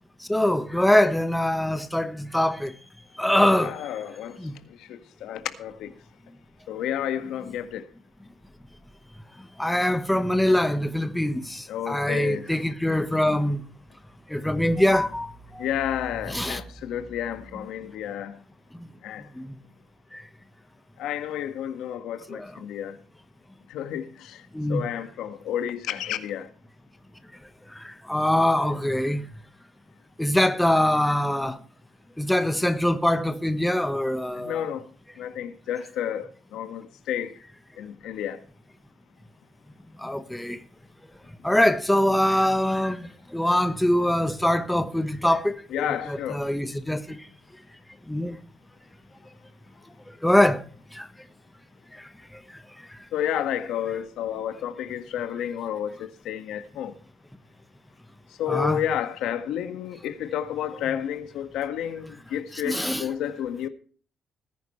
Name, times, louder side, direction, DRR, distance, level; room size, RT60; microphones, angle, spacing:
voice 1, 0.3-2.7 3.2-3.7 4.4-4.5 9.6-13.6 14.3-15.6 16.3-16.6 19.4-19.5 22.3-22.5 24.5-24.8 27.8-29.2 30.2-31.6 32.2-34.6 40.0-40.6 41.4-47.2 48.1-48.4 50.2-50.6 50.9-51.1 58.5-58.8 62.6-63.0, left 1 dB, 5° left, 1.2 m, -23 dB
voice 2, 3.6-4.4 4.8-5.9 6.7-7.9 11.7-12.4 15.6-18.4 19.0-19.3 21.0-23.0 23.7-24.4 24.7-26.5 34.3-34.9 35.2-37.3 37.8-38.4 45.7-46.4 53.1-56.9 58.4-63.7, left 10 dB, 85° left, 1.7 m, -31 dB
19.5 x 10.5 x 3.2 m
cardioid pair, 115°, 0 cm